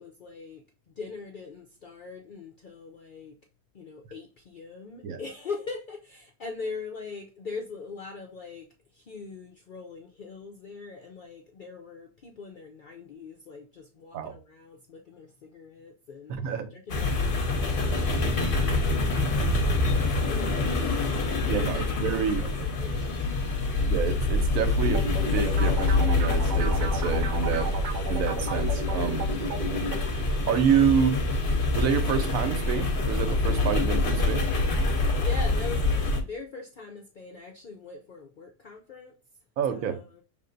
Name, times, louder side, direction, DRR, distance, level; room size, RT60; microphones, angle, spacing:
voice 1, 0.0-3.4 3.7-8.7 8.9-23.6 27.5-27.8 35.0-39.2 39.7-40.2, left 4 dB, 65° left, 0.5 m, -42 dB
voice 2, 16.3-16.7 21.5-22.5 23.9-27.7 28.1-29.3 30.5-31.2 31.7-34.4 39.6-40.0, right 7 dB, 80° right, 1.1 m, -28 dB
sound 1, 16.9-36.2, left 2 dB, 45° left, 0.9 m, -26 dB
sound 2, 24.8-30.0, right 2 dB, 60° right, 0.5 m, -34 dB
5.5 x 3.5 x 2.6 m
omnidirectional pair, 1.4 m